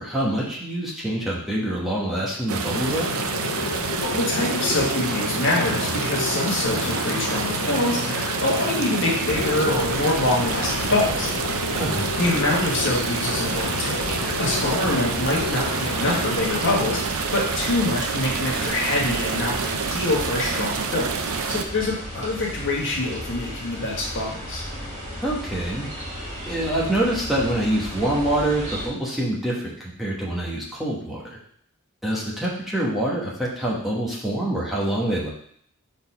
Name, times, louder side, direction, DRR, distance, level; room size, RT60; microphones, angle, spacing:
voice 1, 0.0-3.1 11.8-12.1 25.2-25.9 26.5-31.4 32.0-35.3, right 1 dB, ahead, -5 dB, 1.2 m, -25 dB
sound 1, 2.5-21.6, right 5 dB, 70° right, 0.6 m, -28 dB
sound 2, 2.7-17.0, left 6 dB, 75° left, 0.4 m, -32 dB
voice 2, 4.0-11.3 12.2-24.6, left 2 dB, 60° left, -2 dB, 1.3 m, -25 dB
sound 3, 9.2-28.9, equal, 30° right, 2.0 m, -35 dB
4.3 x 4.1 x 5.5 m, 0.63 s
head